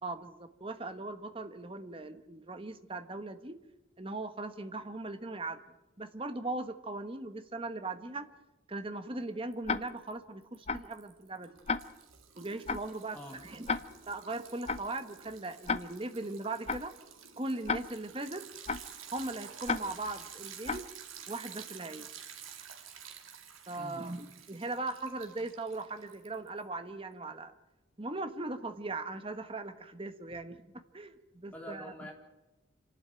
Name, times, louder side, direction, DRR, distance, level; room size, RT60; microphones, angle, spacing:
voice 1, 0.0-3.6 4.0-5.6 6.0-8.3 8.7-11.5 12.4-13.8 14.1-16.9 17.4-18.5 19.1-20.9 21.3-22.2 23.7-27.5 28.0-30.7 30.9-31.9, right 2 dB, 25° right, 9 dB, 1.2 m, -39 dB
Liquid, 9.5-10.1 10.4-26.6, right 8 dB, 90° right, 2.4 m, -50 dB
Tick-tock, 9.7-9.8 10.7-10.8 11.7-11.8 12.7-12.8 13.7-13.8 14.7-14.8 15.7-15.8 16.7-16.8 17.7-17.8 18.7-18.8 19.7-19.8 20.7-20.8, left 5 dB, 30° left, 0.7 m, -31 dB
voice 2, 31.5-32.1, equal, 10° left, 0 dB, 3.8 m, -45 dB
27.0 x 12.0 x 9.0 m, 1.0 s
head